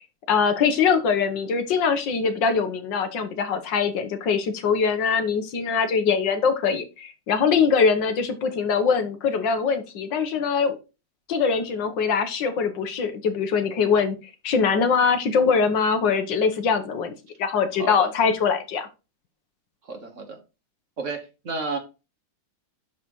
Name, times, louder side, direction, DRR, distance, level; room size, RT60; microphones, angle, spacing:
voice 1, 0.3-10.8 11.3-14.2 14.4-17.1 17.4-18.9, left 6 dB, 75° left, 8 dB, 1.7 m, -22 dB
voice 2, 17.8-18.1 19.9-20.4 21.0-21.8, right 3 dB, 45° right, 5 dB, 1.4 m, -32 dB
12.0 x 4.1 x 3.1 m, 0.29 s
omnidirectional pair, 2.0 m